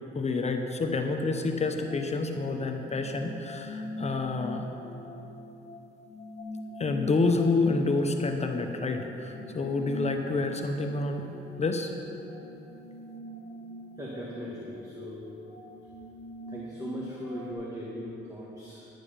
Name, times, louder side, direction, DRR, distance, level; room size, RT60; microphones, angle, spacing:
voice 1, 0.1-4.6 6.8-11.3 11.6-11.9, left 3 dB, 35° left, 4 dB, 0.8 m, -28 dB
sound 1, 1.7-17.5, left 1 dB, 60° left, 1.4 m, -43 dB
voice 2, 14.0-15.3 16.5-18.9, equal, 15° right, -6 dB, 2.0 m, -39 dB
11.0 x 9.1 x 5.3 m, 2.9 s
cardioid pair, 90°, 20 cm